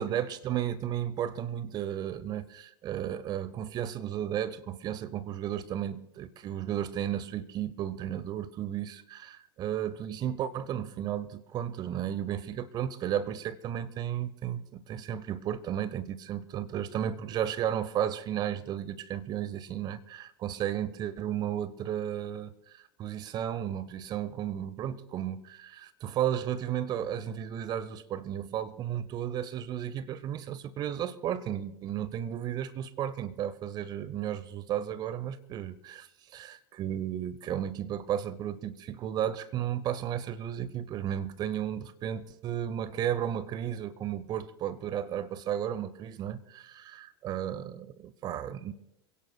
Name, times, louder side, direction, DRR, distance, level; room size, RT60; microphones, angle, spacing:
voice 1, 0.0-48.7, right 10 dB, 35° right, 1.0 m, -34 dB
27.0 x 17.0 x 2.3 m
figure-of-eight pair, 85°, 13 cm